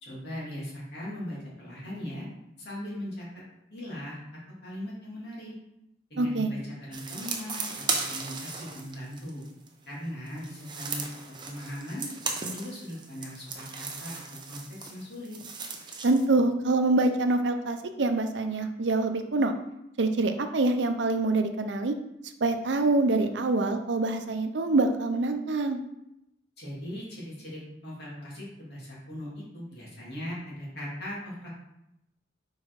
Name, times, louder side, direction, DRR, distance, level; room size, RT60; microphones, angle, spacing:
voice 1, 0.0-2.3 2.6-3.3 3.7-4.2 4.6-5.5 6.1-7.7 8.1-9.4 9.9-12.1 12.4-15.4 26.6-31.5, equal, 65° left, -6 dB, 2.4 m, -39 dB
voice 2, 6.2-6.5 16.0-19.5 20.0-22.0 22.4-25.8, right 2 dB, 75° right, 7 dB, 0.6 m, -25 dB
sound 1, 6.9-9.7 10.3-16.3, right 4 dB, 25° right, 0.7 m, -36 dB
4.7 x 4.6 x 4.6 m, 0.83 s
head